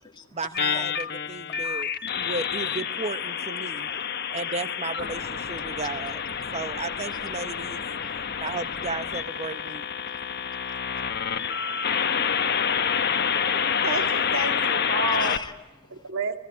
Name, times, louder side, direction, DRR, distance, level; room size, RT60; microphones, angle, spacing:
voice 1, 0.3-3.9 4.3-6.2 6.5-7.8 8.4-9.9, right 3 dB, 30° right, 0.9 m, -34 dB
sound 1, 0.5-15.4, left 7 dB, 45° left, 1.2 m, -28 dB
voice 2, 11.3-13.9 15.2-16.1, left 4 dB, 20° left, 1.9 m, -46 dB
voice 3, 13.8-15.4 15.9-16.4, right 3 dB, 65° right, 2.7 m, -30 dB
29.5 x 17.0 x 9.6 m
head